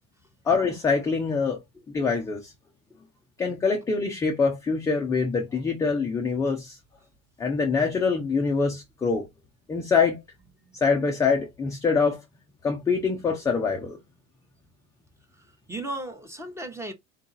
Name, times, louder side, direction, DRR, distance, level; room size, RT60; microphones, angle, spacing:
voice 1, 0.5-1.6 1.9-2.5 3.4-6.8 7.4-9.3 9.7-10.2 10.8-12.2 12.6-14.0, left 5 dB, 10° left, 0.3 m, -24 dB
voice 2, 15.3-16.9, right 1 dB, 5° right, 0.7 m, -36 dB
3.9 x 2.4 x 3.8 m
supercardioid pair, 130°, 41 cm